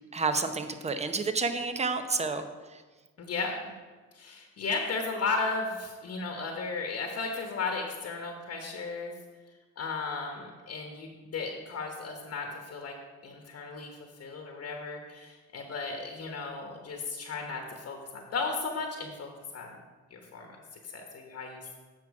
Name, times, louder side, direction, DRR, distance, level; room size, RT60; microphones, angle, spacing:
voice 1, 0.1-2.5, right 4 dB, 20° right, 9 dB, 0.7 m, -29 dB
voice 2, 3.2-3.6 4.1-9.1 9.8-12.9 13.2-13.9 14.2-19.8 20.1-20.5 20.9-21.7, left 4 dB, 55° left, 2 dB, 1.2 m, -35 dB
8.2 x 6.1 x 4.8 m, 1.3 s
cardioid pair, 90°, 30 cm